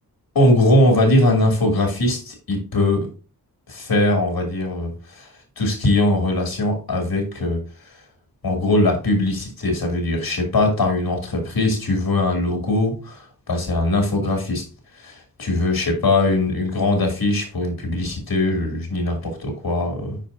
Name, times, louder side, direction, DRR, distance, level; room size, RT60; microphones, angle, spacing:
voice 1, 0.3-3.1 3.7-5.3 5.6-7.6 7.9-8.0 8.4-14.6 14.9-20.2, left 1 dB, 80° left, 3 dB, 2.6 m, -21 dB
9.1 x 5.1 x 2.6 m, 0.33 s
wide cardioid pair, 100°, 36 cm